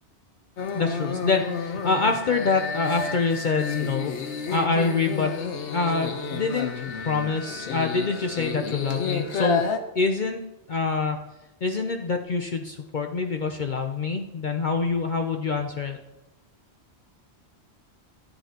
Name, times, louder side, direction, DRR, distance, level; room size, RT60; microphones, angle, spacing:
sound 1, 0.6-9.8, left 5 dB, 85° left, 1.2 m, -31 dB
voice 1, 0.7-5.4 5.7-9.7 10.0-10.4 10.7-11.2 11.6-16.0, left 4 dB, 50° left, 4 dB, 0.7 m, -26 dB
12.5 x 10.5 x 2.9 m, 0.96 s
omnidirectional pair, 1.1 m